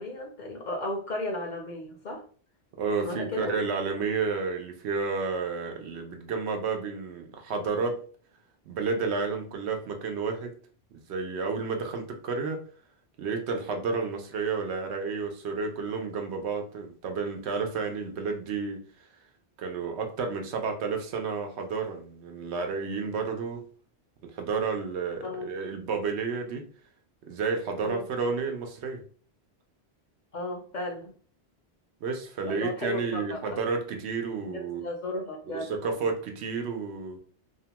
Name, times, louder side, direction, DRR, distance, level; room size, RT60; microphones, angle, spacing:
voice 1, 0.0-2.2 3.0-3.5 25.2-25.5 27.8-28.1 30.3-31.1 32.5-33.6 34.4-36.1, left 1 dB, 55° left, 2 dB, 0.6 m, -35 dB
voice 2, 2.8-8.0 8.7-10.5 11.1-12.6 13.2-18.8 19.6-23.6 24.3-26.6 27.3-29.0 32.0-34.9 35.5-37.2, right 4 dB, 85° right, 4 dB, 0.9 m, -31 dB
2.7 x 2.1 x 2.8 m, 0.43 s
omnidirectional pair, 1.1 m